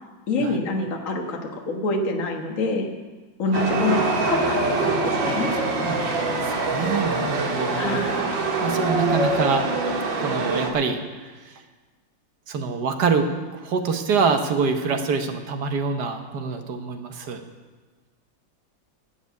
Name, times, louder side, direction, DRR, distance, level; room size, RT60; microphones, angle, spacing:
voice 1, 0.3-1.4 1.7-2.9 3.4-5.5 7.8-8.2, left 2 dB, 45° left, 2 dB, 1.6 m, -26 dB
Chatter / Subway metro underground, 3.5-10.7, right 2 dB, 85° right, 2.2 m, -24 dB
voice 2, 5.8-8.0 8.6-9.6 10.2-11.6 12.5-17.4, right 5 dB, 65° right, 6 dB, 1.5 m, -26 dB
11.5 x 7.2 x 9.4 m, 1.3 s
omnidirectional pair, 2.0 m